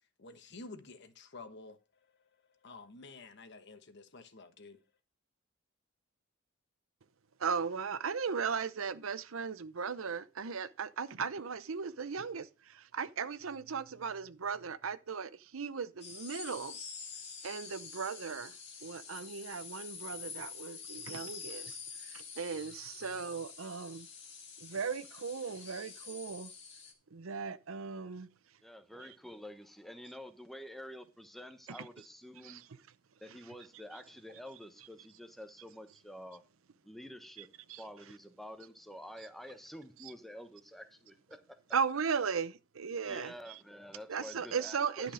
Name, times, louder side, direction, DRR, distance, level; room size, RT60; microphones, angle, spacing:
voice 1, 0.2-1.8 2.6-4.8, left 3 dB, 55° left, 1.2 m, -50 dB
voice 2, 7.4-16.8 17.4-18.5 18.8-24.1 24.6-26.5 27.1-28.3 31.7-31.9 32.4-32.6 37.7-37.8 41.7-43.6 44.1-45.1, right 6 dB, 85° right, 0.7 m, -37 dB
sound 1, 16.0-26.9, left 6 dB, 30° left, 2.2 m, -47 dB
voice 3, 28.6-32.6 33.2-36.5 36.8-41.6 43.0-45.1, equal, ahead, 1.0 m, -49 dB
11.0 x 6.1 x 5.0 m
head